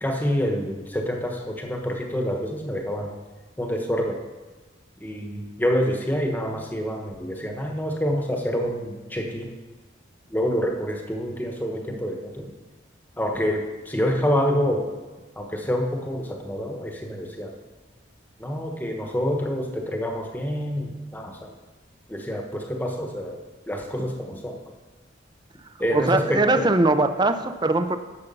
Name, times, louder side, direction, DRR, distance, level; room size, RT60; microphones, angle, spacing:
voice 1, 0.0-3.1 3.6-4.2 5.0-9.5 10.3-12.5 13.2-14.9 15.4-17.6 18.4-21.5 22.1-23.4 23.7-24.7 25.8-26.7, equal, 10° left, 2 dB, 1.0 m, -27 dB
voice 2, 25.9-28.0, right 2 dB, 20° right, 10 dB, 0.5 m, -21 dB
10.5 x 7.0 x 5.5 m, 1.3 s
head